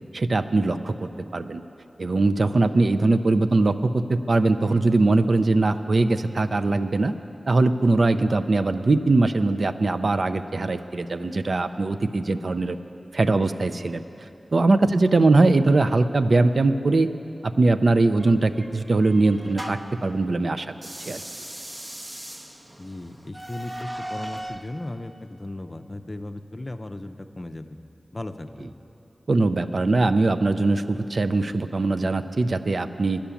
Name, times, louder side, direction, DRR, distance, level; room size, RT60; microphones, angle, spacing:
voice 1, 0.1-1.6 2.0-7.1 7.5-12.8 13.1-14.0 14.5-17.1 17.4-20.7 21.1-21.2 29.3-33.2, right 2 dB, 65° right, 9 dB, 0.4 m, -21 dB
voice 2, 14.8-15.2 22.8-27.8 28.1-28.7, left 1 dB, 35° left, 7 dB, 0.5 m, -37 dB
sound 1, 18.2-20.0 20.7-24.7, right 1 dB, 30° right, 0.7 m, -38 dB
10.0 x 10.0 x 7.0 m, 2.8 s
wide cardioid pair, 70°, 0 cm